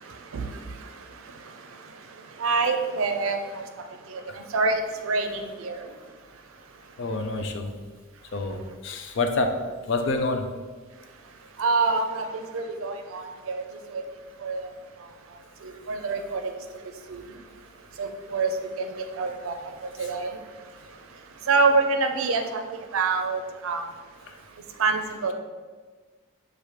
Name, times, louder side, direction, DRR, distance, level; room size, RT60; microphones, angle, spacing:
voice 1, 0.1-0.9 2.4-3.6 4.1-5.9 11.6-13.6 13.9-14.0 14.4-14.7 15.6-16.4 17.1-17.2 18.0-18.5 18.8-19.6 19.8-20.4 21.5-23.9 24.8-25.3, right 4 dB, 85° right, 6 dB, 0.5 m, -26 dB
voice 2, 7.0-7.7 8.3-9.5 9.9-10.4 24.3-24.4, left 3 dB, 60° left, 5 dB, 0.4 m, -27 dB
5.6 x 2.5 x 3.2 m, 1.4 s
head